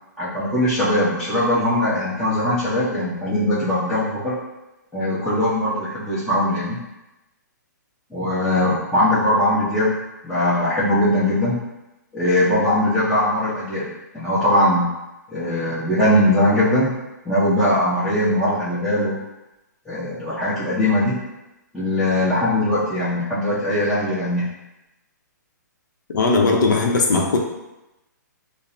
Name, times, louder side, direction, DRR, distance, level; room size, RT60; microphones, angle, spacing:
voice 1, 0.2-4.4 4.9-6.8 8.1-10.0 10.2-11.6 12.1-14.9 15.3-16.9 17.2-19.2 19.8-21.2 21.7-24.5, left 1 dB, ahead, -14 dB, 0.9 m, -20 dB
voice 2, 26.1-27.4, left 3 dB, 70° left, 1 dB, 0.6 m, -18 dB
5.1 x 2.0 x 2.6 m, 0.98 s
hypercardioid pair, 140°, 10 cm